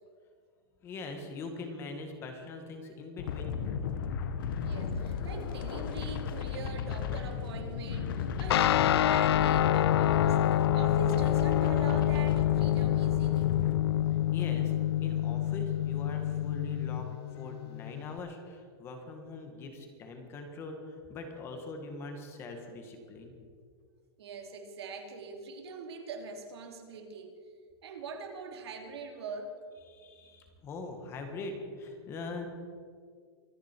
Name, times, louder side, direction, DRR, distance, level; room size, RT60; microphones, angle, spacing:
voice 1, 0.8-3.6 14.3-14.7 15.0-23.3 29.9-32.5, left 3 dB, 20° left, 5 dB, 1.5 m, -42 dB
sound 1, 3.2-13.8, left 6 dB, 55° left, 1.1 m, -34 dB
voice 2, 4.6-13.5 24.2-27.3 27.8-29.6, right 5 dB, 85° right, 4 dB, 2.5 m, -42 dB
Guitar, 8.5-18.2, left 12 dB, 80° left, 0.5 m, -27 dB
24.5 x 10.0 x 4.4 m, 2.1 s
supercardioid pair, 175°, 13 cm